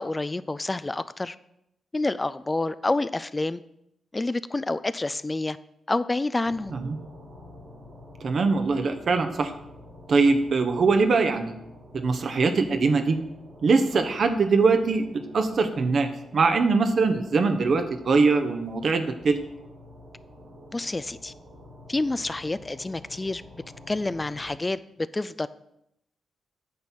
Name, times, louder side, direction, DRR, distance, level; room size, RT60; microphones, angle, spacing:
voice 1, 0.0-1.4 1.9-3.6 4.1-5.6 5.9-6.7 20.7-21.3 21.9-23.4 23.9-25.5, left 2 dB, 25° left, 14 dB, 0.3 m, -28 dB
sound 1, 6.4-24.6, left 1 dB, 80° right, 2.3 m, -48 dB
voice 2, 8.2-9.5 10.1-11.5 11.9-13.2 13.6-15.0 15.3-19.4, right 4 dB, 60° right, 7 dB, 0.9 m, -22 dB
9.5 x 4.1 x 6.1 m, 0.80 s
supercardioid pair, 45°, 0 cm